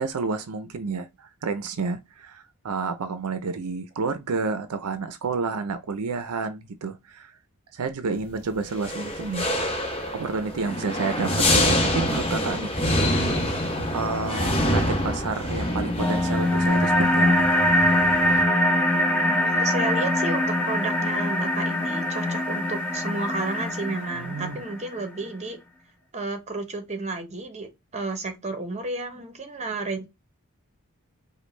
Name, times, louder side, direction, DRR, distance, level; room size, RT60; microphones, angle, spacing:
voice 1, 0.0-7.4 7.7-9.5 10.1-13.2 13.9-17.6 24.1-24.6, right 4 dB, 80° right, 0.5 m, -30 dB
sound 1, 8.7-18.4, left 1 dB, 25° left, 1.1 m, -26 dB
sound 2, 16.0-25.0, left 1 dB, 5° left, 0.8 m, -23 dB
voice 2, 19.4-25.6 26.1-30.0, right 2 dB, 30° right, 0.9 m, -32 dB
5.1 x 2.2 x 3.2 m
head